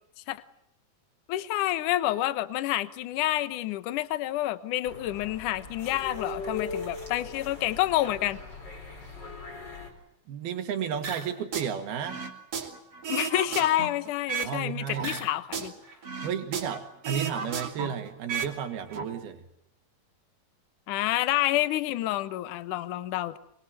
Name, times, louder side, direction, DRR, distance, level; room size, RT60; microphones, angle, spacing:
voice 1, 1.3-8.4 13.1-15.7 20.9-23.4, left 15 dB, 65° left, 14 dB, 2.5 m, -28 dB
sound 1, 4.8-9.9, left 3 dB, 30° left, 5.2 m, -39 dB
voice 2, 10.3-12.2 14.4-15.2 16.2-19.4, right 8 dB, 85° right, 5 dB, 4.0 m, -33 dB
sound 2, 11.0-11.7 12.0-14.6 14.9-16.8 17.0-18.5 18.8-19.0, right 5 dB, 40° right, 3.7 m, -34 dB
25.5 x 24.5 x 7.9 m, 0.78 s
omnidirectional pair, 4.3 m